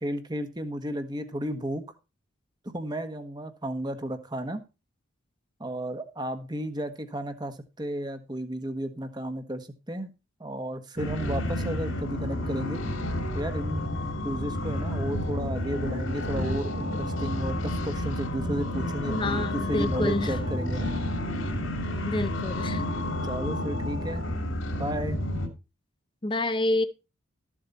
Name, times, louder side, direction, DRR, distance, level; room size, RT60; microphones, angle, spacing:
voice 1, 0.0-1.8 2.6-4.6 5.6-10.1 10.4-12.8 13.3-13.8 14.2-20.9 23.2-24.2 24.7-25.2, right 1 dB, 20° right, 1.3 m, -33 dB
sound 1, 11.0-25.5, left 1 dB, 70° left, 2.8 m, -30 dB
voice 2, 19.1-20.4 22.0-22.8 26.2-26.9, left 2 dB, 25° left, 0.7 m, -28 dB
13.5 x 7.5 x 4.2 m
head